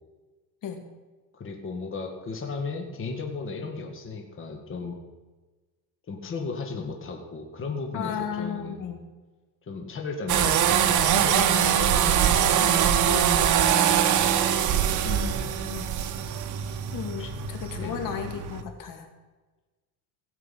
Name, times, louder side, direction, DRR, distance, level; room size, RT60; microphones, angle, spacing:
voice 1, 1.3-5.0 6.1-8.9 9.7-12.5 14.7-15.0 17.1-17.3 17.8-18.1, left 4 dB, 35° left, 2 dB, 1.9 m, -35 dB
voice 2, 7.9-9.0 12.5-13.6 15.0-16.0 16.9-19.1, left 7 dB, 60° left, 6 dB, 2.1 m, -35 dB
sound 1, 10.3-18.6, right 9 dB, 55° right, 1.1 m, -23 dB
17.0 x 7.5 x 5.8 m, 1.3 s
cardioid pair, 135°, 36 cm